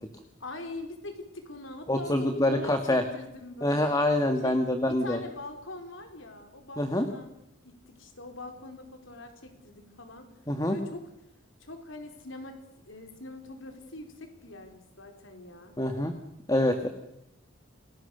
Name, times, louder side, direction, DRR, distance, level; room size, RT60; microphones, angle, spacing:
voice 1, 0.4-4.0 4.4-4.6 4.9-7.3 7.6-10.3 10.6-11.0 11.6-12.6 12.8-15.8, left 2 dB, 75° left, 5 dB, 4.8 m, -43 dB
voice 2, 1.9-3.0 3.6-5.2 6.8-7.1 10.5-10.8 15.8-16.1 16.5-16.9, left 1 dB, 20° left, 7 dB, 1.7 m, -25 dB
29.0 x 20.5 x 6.8 m, 0.83 s
head